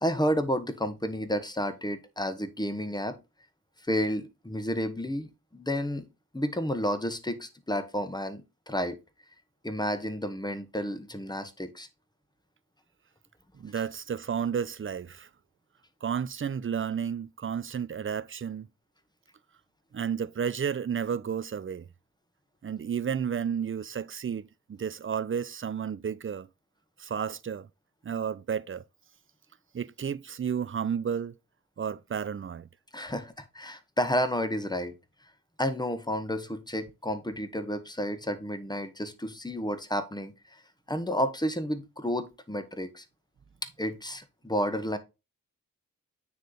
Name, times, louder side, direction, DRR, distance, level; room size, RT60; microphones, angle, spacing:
voice 1, 0.0-3.2 3.9-6.1 6.3-9.0 9.6-11.9 32.9-34.9 35.6-40.6 40.9-43.0 43.8-45.0, equal, 10° left, 1.2 m, -31 dB
voice 2, 13.5-15.3 16.0-18.7 19.9-21.9 22.6-26.5 27.0-27.7 28.0-28.8 29.7-31.4 31.8-32.7, right 7 dB, 35° right, 0.5 m, -32 dB
9.2 x 3.2 x 3.9 m
cardioid pair, 50°, 36 cm